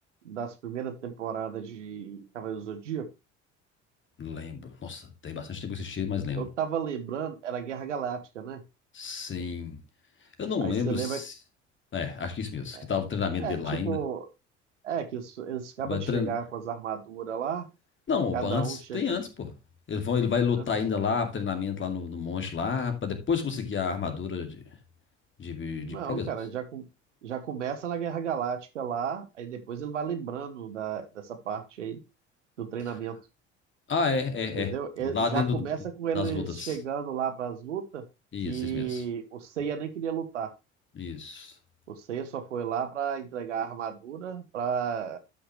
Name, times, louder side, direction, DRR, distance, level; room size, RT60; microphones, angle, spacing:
voice 1, 0.2-3.1 6.3-8.6 10.6-11.2 12.8-12.9 13.4-14.3 14.8-17.7 18.3-19.0 20.6-20.7 25.9-26.9 27.2-32.0 32.6-33.2 34.6-38.0 38.4-40.5 41.9-45.2, right 8 dB, 85° right, 1.2 m, -33 dB
voice 2, 4.2-6.5 8.9-9.8 10.4-11.3 11.9-14.0 15.8-16.3 18.1-19.5 19.9-24.6 25.4-26.3 33.9-34.7 35.0-35.7 36.1-36.8 38.3-39.0 41.0-41.5, left 6 dB, 35° left, 2.5 m, -30 dB
12.0 x 5.9 x 3.2 m
hypercardioid pair, 65°, 35 cm